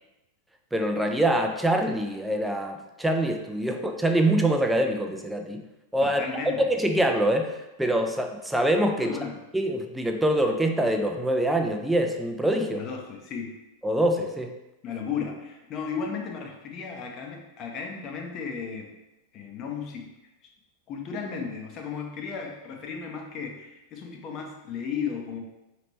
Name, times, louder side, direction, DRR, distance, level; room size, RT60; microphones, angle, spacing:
voice 1, 0.7-5.6 5.9-6.2 6.6-9.2 9.5-12.9 13.8-14.5, right 1 dB, 5° right, 3 dB, 0.5 m, -24 dB
voice 2, 6.0-6.7 9.0-9.4 12.7-13.6 14.8-18.9 19.3-20.1 20.4-20.5 20.9-25.4, left 6 dB, 35° left, 2 dB, 0.7 m, -35 dB
5.0 x 3.0 x 3.0 m, 0.96 s
figure-of-eight pair, 90°, 0 cm